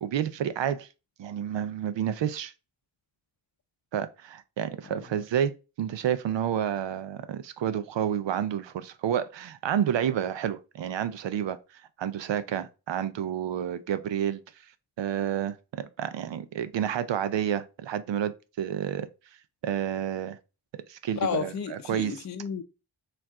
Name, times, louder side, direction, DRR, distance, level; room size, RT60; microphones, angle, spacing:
voice 1, 0.0-0.9 1.2-2.5 3.9-5.5 5.8-11.6 12.0-14.4 15.0-19.1 19.6-20.4 20.9-22.2, right 9 dB, 85° right, 0.5 m, -30 dB
voice 2, 21.2-22.6, left 6 dB, 40° left, 0.5 m, -31 dB
4.5 x 2.5 x 3.5 m
cardioid pair, 50°, 43 cm